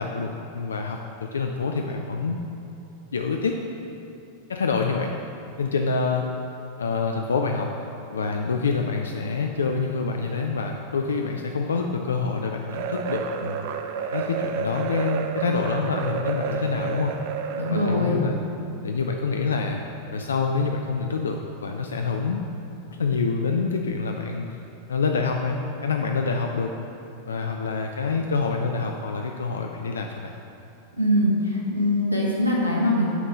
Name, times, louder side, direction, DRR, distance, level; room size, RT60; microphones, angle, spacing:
voice 1, 0.0-2.4 3.1-3.6 4.5-5.1 5.6-6.2 6.8-7.7 8.1-13.7 14.1-17.1 17.7-18.3 18.8-19.8 20.1-22.4 23.0-24.5 24.9-26.7 27.3-30.3, left 4 dB, 70° left, 3 dB, 0.3 m, -26 dB
sound 1, 12.7-18.1, right 6 dB, 50° right, 0.4 m, -30 dB
voice 2, 17.5-18.3 31.0-33.1, left 1 dB, 90° right, -4 dB, 1.2 m, -22 dB
7.3 x 4.1 x 5.0 m, 2.8 s
figure-of-eight pair, 90°, 0 cm